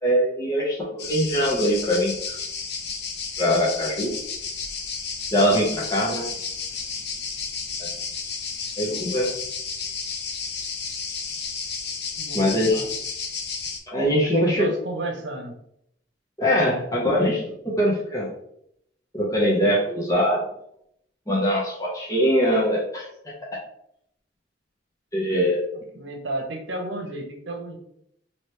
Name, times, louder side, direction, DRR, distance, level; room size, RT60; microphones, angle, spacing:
voice 1, 0.0-2.4 3.4-4.1 5.3-6.3 7.8-7.9 8.8-9.3 12.3-12.9 13.9-14.7 16.4-18.3 19.1-20.4 21.3-23.1 25.1-25.6, equal, 20° left, -6 dB, 0.8 m, -22 dB
sound 1, 1.0-13.8, left 5 dB, 65° left, 0.6 m, -32 dB
voice 2, 12.1-12.9 14.2-15.5 25.9-27.8, right 2 dB, 75° right, 3 dB, 0.8 m, -32 dB
3.0 x 2.9 x 3.2 m, 0.73 s
head